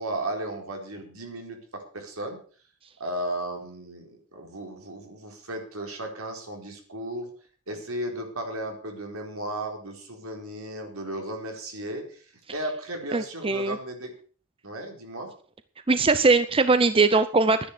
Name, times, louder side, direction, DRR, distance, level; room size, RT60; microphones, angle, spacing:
voice 1, 0.0-2.4 3.0-7.3 7.7-12.2 12.5-14.1 14.6-15.3, right 1 dB, 75° right, 3 dB, 4.2 m, -35 dB
voice 2, 13.1-13.8 15.9-17.7, right 3 dB, 25° right, 11 dB, 0.6 m, -21 dB
12.5 x 10.0 x 6.7 m, 0.43 s
head